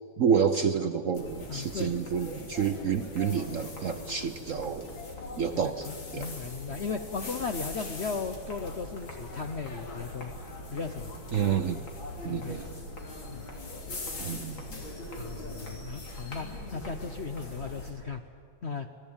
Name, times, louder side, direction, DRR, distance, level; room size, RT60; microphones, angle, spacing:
voice 1, 0.2-4.9 5.4-6.3 11.3-11.8 12.2-12.7 14.2-14.7, right 7 dB, 60° right, 8 dB, 0.8 m, -29 dB
sound 1, 1.1-17.9, left 2 dB, 85° left, 3.8 m, -41 dB
voice 2, 1.5-1.9 5.9-10.3 10.7-11.1 12.2-12.6 13.3-13.5 15.1-18.2 18.6-18.9, left 5 dB, 55° left, 7 dB, 0.7 m, -36 dB
26.5 x 17.5 x 8.9 m, 2.3 s
omnidirectional pair, 2.1 m